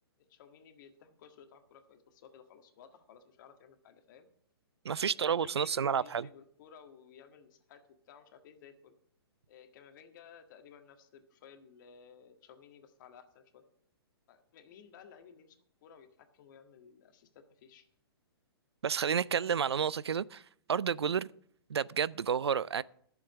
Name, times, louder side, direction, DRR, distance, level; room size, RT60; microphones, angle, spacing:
voice 1, 0.3-4.3 5.0-8.9 9.5-13.6 14.3-17.9, left 7 dB, 50° left, 1.7 m, -56 dB
voice 2, 4.8-6.3 18.8-20.4 20.7-21.3 21.7-22.8, right 7 dB, 90° right, 0.4 m, -30 dB
12.0 x 7.1 x 7.8 m
hypercardioid pair, 130°, 13 cm